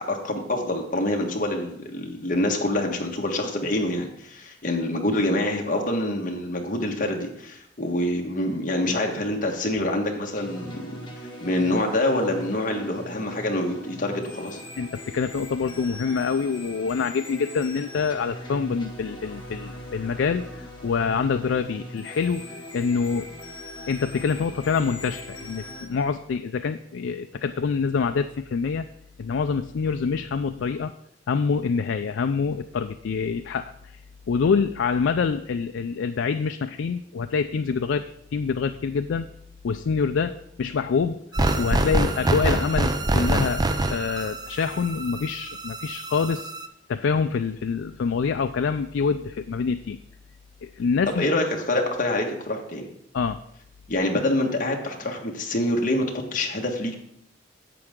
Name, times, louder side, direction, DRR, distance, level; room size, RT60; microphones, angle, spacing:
voice 1, 0.0-11.0 11.4-14.6 51.2-52.9 53.9-56.9, left 1 dB, 45° left, 1 dB, 1.5 m, -26 dB
sound 1, 10.4-25.8, left 1 dB, 25° left, 1.8 m, -40 dB
voice 2, 14.8-22.5 22.7-23.3 23.9-28.9 29.2-30.9 31.3-34.0 34.3-39.3 39.6-41.2 41.6-46.5 46.9-50.0 50.6-51.3 53.1-53.4, left 5 dB, 85° left, 8 dB, 0.4 m, -26 dB
sound 2, 41.3-46.7, right 2 dB, 20° right, 0.6 m, -25 dB
10.5 x 7.7 x 3.7 m, 0.75 s
head